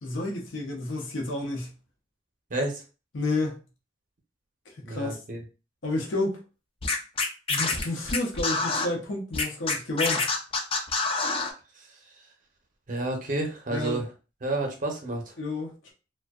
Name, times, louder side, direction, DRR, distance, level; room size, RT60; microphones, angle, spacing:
voice 1, 0.0-1.7 3.1-3.6 4.9-5.2 5.8-6.4 7.5-10.3 13.7-14.0 15.4-15.9, left 2 dB, 70° left, 0.7 m, -30 dB
voice 2, 2.5-2.8 4.8-5.4 12.9-14.1 14.4-15.2, right 2 dB, 45° right, 0.6 m, -30 dB
Scratching (performance technique), 6.8-8.9 9.3-11.5, left 4 dB, 30° left, 0.4 m, -26 dB
2.5 x 2.2 x 2.3 m
head